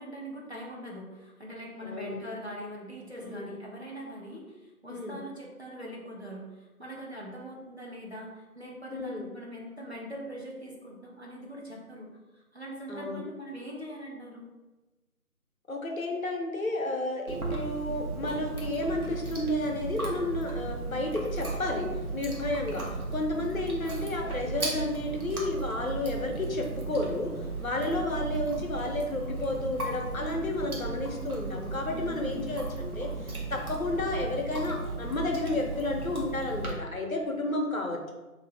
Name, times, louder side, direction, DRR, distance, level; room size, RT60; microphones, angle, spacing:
voice 1, 0.0-12.1 12.5-14.5 31.9-32.6, equal, 45° right, -3 dB, 0.5 m, -42 dB
voice 2, 1.8-2.2 3.2-3.5 4.9-5.2 8.9-9.3 12.9-13.2 15.7-21.9 22.1-22.8 23.1-27.3 27.6-38.1, left 2 dB, 65° left, 2 dB, 0.6 m, -32 dB
Chewing mastication, 17.3-36.7, right 3 dB, 70° right, 0.9 m, -35 dB
2.6 x 2.5 x 3.1 m, 1.2 s
figure-of-eight pair, 165°, 45 cm